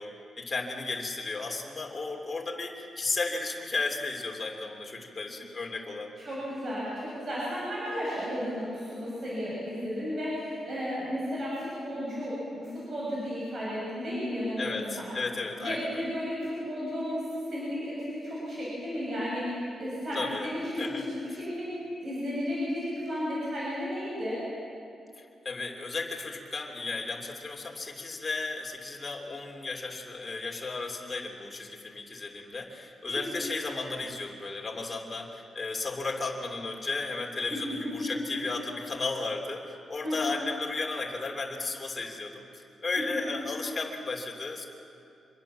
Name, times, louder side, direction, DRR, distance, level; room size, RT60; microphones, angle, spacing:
voice 1, 0.0-6.2 14.6-16.0 20.1-21.1 25.2-44.6, left 3 dB, 20° left, 0 dB, 3.1 m, -34 dB
voice 2, 6.2-15.1 15.6-17.2 17.5-19.5 19.8-24.4 33.1-33.4 37.5-38.4 40.0-40.4 43.0-43.1, equal, 40° right, -7 dB, 7.6 m, -33 dB
25.5 x 22.5 x 7.5 m, 2.5 s
wide cardioid pair, 165°, 0 cm